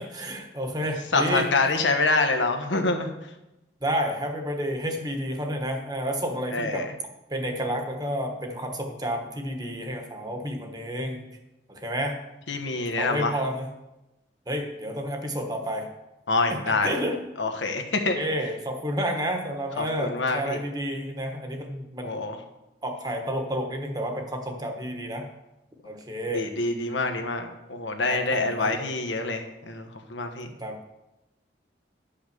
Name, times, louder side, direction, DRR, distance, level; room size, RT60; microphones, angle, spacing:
voice 1, 0.0-1.5 3.8-6.9 7.3-11.2 11.7-12.2 13.0-13.7 14.5-15.9 16.5-17.1 18.1-22.2 22.8-25.3 25.8-26.4 28.1-28.7 30.6-30.8, equal, 20° right, 3 dB, 1.3 m, -30 dB
voice 2, 1.1-3.1 6.5-6.9 12.5-13.4 16.3-17.0 17.4-18.2 19.8-20.6 22.0-22.4 26.3-30.5, left 3 dB, 90° left, 5 dB, 1.3 m, -26 dB
9.9 x 5.7 x 6.7 m, 0.95 s
head